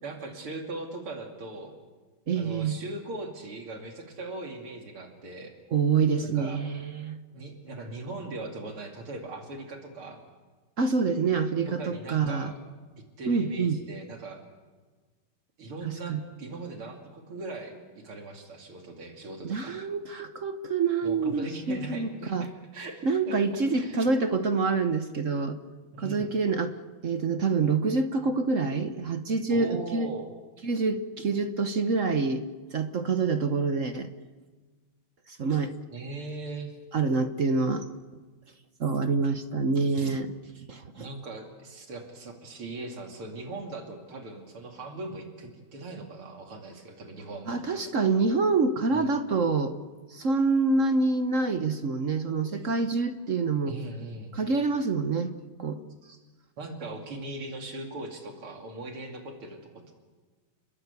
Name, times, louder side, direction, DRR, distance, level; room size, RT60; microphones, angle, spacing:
voice 1, 0.0-1.7 2.4-5.5 6.2-6.6 7.3-10.2 11.8-12.6 13.2-14.4 15.6-19.8 21.0-24.1 25.9-26.3 29.5-30.3 35.9-36.7 41.0-47.8 48.9-49.1 53.7-54.4 56.0-56.2 56.6-59.9, right 2 dB, 90° right, 3 dB, 3.6 m, -39 dB
voice 2, 2.3-2.8 5.7-7.2 10.8-12.5 13.3-13.8 15.8-16.2 19.4-22.5 23.0-25.6 26.0-26.8 27.0-30.1 30.6-32.5 32.7-34.1 35.3-35.8 36.9-37.9 38.8-40.3 40.7-41.1 47.5-49.8 50.1-53.8 54.3-55.3 55.6-55.8, right 4 dB, 45° right, 9 dB, 1.1 m, -26 dB
29.5 x 21.5 x 8.3 m, 1.4 s
omnidirectional pair, 2.3 m